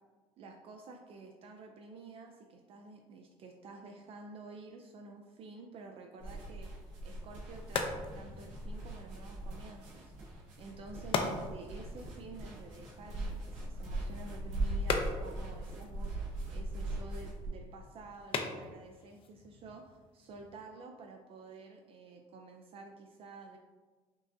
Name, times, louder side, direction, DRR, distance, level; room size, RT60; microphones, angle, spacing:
voice 1, 0.4-6.7 7.0-10.1 10.6-23.6, right 3 dB, 50° right, 3 dB, 0.4 m, -50 dB
sound 1, 6.2-17.5, right 2 dB, 75° right, 1.0 m, -40 dB
sound 2, 7.2-20.6, left 4 dB, 45° left, 0.4 m, -41 dB
5.3 x 2.5 x 2.6 m, 1.4 s
cardioid pair, 130°, 13 cm